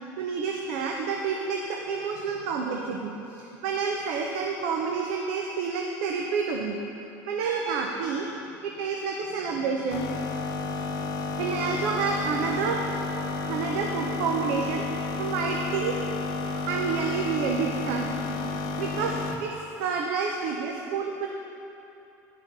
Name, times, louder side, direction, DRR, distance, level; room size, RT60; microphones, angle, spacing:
voice 1, 0.2-6.8 7.3-8.3 8.6-10.3 11.4-12.8 13.4-14.8 15.2-16.0 16.4-18.2 18.8-19.1 19.4-21.3, right 5 dB, 80° right, 1 dB, 0.8 m, -29 dB
sound 1, 9.9-19.5, left 3 dB, 60° left, 0.8 m, -31 dB
10.0 x 6.2 x 5.5 m, 2.8 s
supercardioid pair, 110°, 8 cm